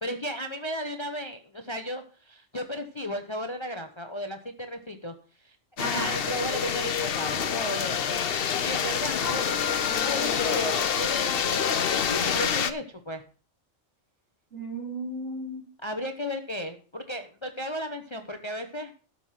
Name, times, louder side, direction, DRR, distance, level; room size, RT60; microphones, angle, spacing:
voice 1, 0.0-5.1 5.4-5.6 5.9-8.2 8.5-9.7 10.0-11.6 11.9-13.2 15.8-18.9, equal, 25° left, 6 dB, 0.8 m, -34 dB
sound 1, 5.8-12.7, left 7 dB, 55° left, 0.9 m, -27 dB
voice 2, 5.8-6.1 9.7-10.5 14.5-15.6, right 1 dB, 60° right, -1 dB, 3.9 m, -35 dB
12.5 x 5.5 x 5.7 m, 0.38 s
omnidirectional pair, 1.3 m